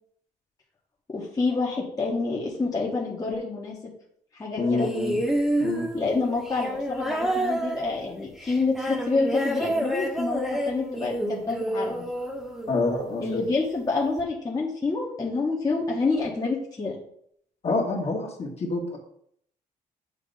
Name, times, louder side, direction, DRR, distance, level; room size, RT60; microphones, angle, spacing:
voice 1, 1.1-3.8 4.3-4.9 5.9-12.0 13.2-17.0, left 3 dB, 25° left, -3 dB, 1.2 m, -27 dB
voice 2, 4.6-5.1 5.6-5.9 12.7-13.4 17.6-19.0, left 3 dB, 45° left, 0 dB, 1.7 m, -27 dB
sound 1, 4.8-13.2 14.2-14.3, right 1 dB, ahead, 1.1 m, -29 dB
8.4 x 2.9 x 5.4 m, 0.68 s
cardioid pair, 105°, 15 cm